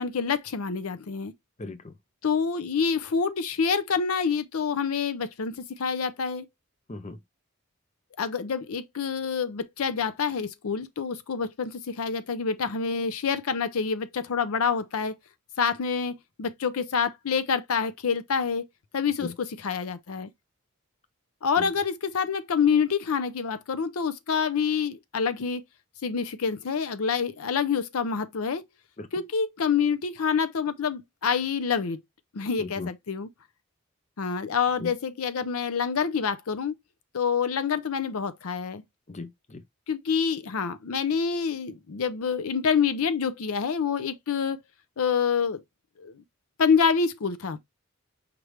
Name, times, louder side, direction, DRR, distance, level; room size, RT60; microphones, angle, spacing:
voice 1, 0.0-1.3 2.2-6.4 8.2-15.1 15.6-18.7 18.9-20.3 21.4-25.6 26.0-28.6 29.1-32.0 32.3-33.3 34.2-36.7 37.1-38.8 39.9-44.6 45.0-45.6 46.0-46.1 46.6-47.6, left 6 dB, 80° left, 0.6 m, -27 dB
voice 2, 1.6-1.9 6.9-7.2 19.2-19.3 21.6-21.7 29.0-29.1 32.6-32.9 34.8-34.9 39.1-39.6, left 3 dB, 30° left, 0.6 m, -37 dB
5.1 x 3.3 x 3.0 m
head